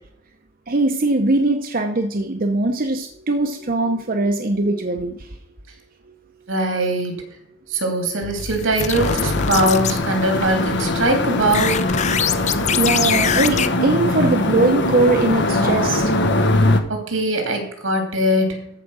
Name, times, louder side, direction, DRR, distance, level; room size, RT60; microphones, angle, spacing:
voice 1, 0.7-5.3 12.8-16.1, right 2 dB, 45° right, 4 dB, 0.9 m, -20 dB
voice 2, 6.5-7.2 7.7-11.8 14.2-14.3 16.9-18.7, right 1 dB, 85° right, 4 dB, 2.8 m, -21 dB
sound 1, 8.2-10.0 11.4-13.7, left 7 dB, 35° left, 0.6 m, -23 dB
sound 2, 9.0-16.8, left 2 dB, 60° left, 1.2 m, -21 dB
13.5 x 5.0 x 6.3 m, 0.75 s
head